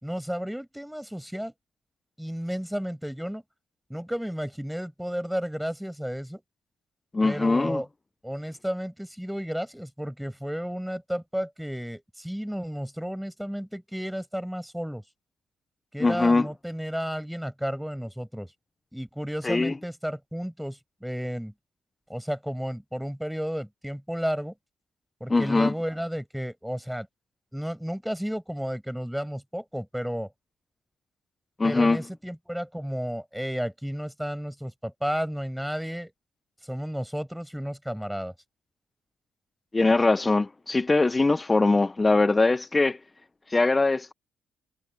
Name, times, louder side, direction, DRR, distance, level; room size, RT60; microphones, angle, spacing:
voice 1, 0.0-1.5 2.2-3.4 3.9-6.4 7.2-7.9 8.2-15.0 15.9-18.5 18.9-21.5 22.1-24.5 25.2-27.1 27.5-30.3 31.6-36.1 36.7-38.3, equal, ahead, 6.5 m, -32 dB
voice 2, 7.1-7.8 16.0-16.5 19.4-19.8 25.3-25.7 31.6-32.0 39.7-43.0 43.5-44.1, left 3 dB, 20° left, 0.7 m, -22 dB
cardioid pair, 90°, 0 cm